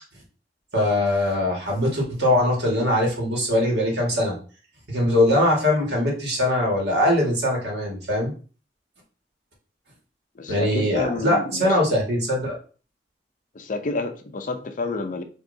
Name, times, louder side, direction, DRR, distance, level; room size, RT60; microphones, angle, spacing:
voice 1, 0.7-4.4 4.9-8.3 10.5-12.6, left 1 dB, 65° right, -1 dB, 1.8 m, -22 dB
voice 2, 10.4-11.7 13.5-15.2, left 3 dB, 50° left, 7 dB, 0.6 m, -29 dB
6.5 x 3.0 x 2.7 m, 0.39 s
head